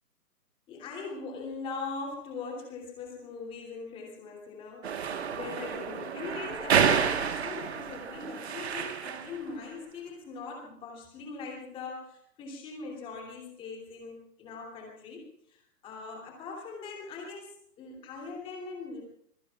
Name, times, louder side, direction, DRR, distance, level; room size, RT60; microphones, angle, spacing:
voice 1, 0.7-19.0, left 4 dB, 10° left, 0 dB, 3.0 m, -41 dB
sound 1, 4.8-9.4, right 7 dB, 40° right, 1.4 m, -29 dB
26.0 x 22.0 x 2.4 m, 0.66 s
hypercardioid pair, 160°, 49 cm